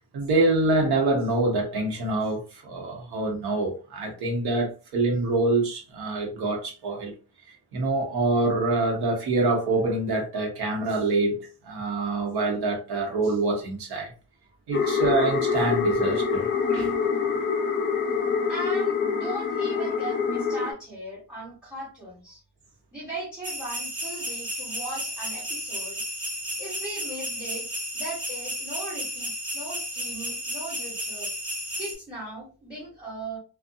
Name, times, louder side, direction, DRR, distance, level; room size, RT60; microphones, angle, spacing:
voice 1, 0.1-7.1 7.7-14.1 14.7-16.9, right 2 dB, 70° right, 1.1 m, -25 dB
sound 1, 14.7-20.7, left 5 dB, 30° left, 0.4 m, -25 dB
voice 2, 18.5-22.4 22.9-26.0 26.6-27.7 27.9-31.3 31.8-33.4, right 1 dB, ahead, 1.1 m, -38 dB
sound 2, 23.4-31.9, equal, 40° right, 1.4 m, -33 dB
2.5 x 2.3 x 2.6 m
cardioid pair, 165°, 40 cm